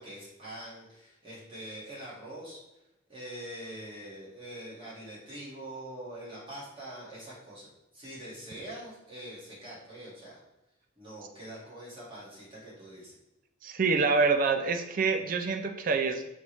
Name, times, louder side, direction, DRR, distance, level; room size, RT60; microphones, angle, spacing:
voice 1, 0.0-2.6 3.1-10.4 11.0-13.2, right 1 dB, 25° right, -6 dB, 1.6 m, -44 dB
voice 2, 13.6-16.3, right 4 dB, 40° right, 6 dB, 0.4 m, -26 dB
5.1 x 3.0 x 3.1 m, 0.92 s
head